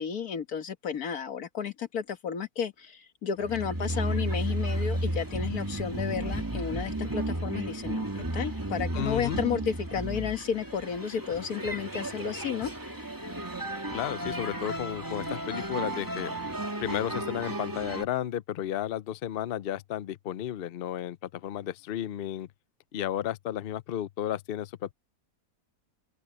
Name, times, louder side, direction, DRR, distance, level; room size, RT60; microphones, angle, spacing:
voice 1, 0.0-12.7, left 7 dB, 80° left, 1.9 m, -32 dB
sound 1, 3.4-18.0, right 1 dB, 15° right, 2.2 m, -33 dB
voice 2, 8.9-9.4 13.9-16.3 16.8-22.5 22.9-24.9, left 11 dB, 60° left, 0.6 m, -33 dB
open air
omnidirectional pair, 1.5 m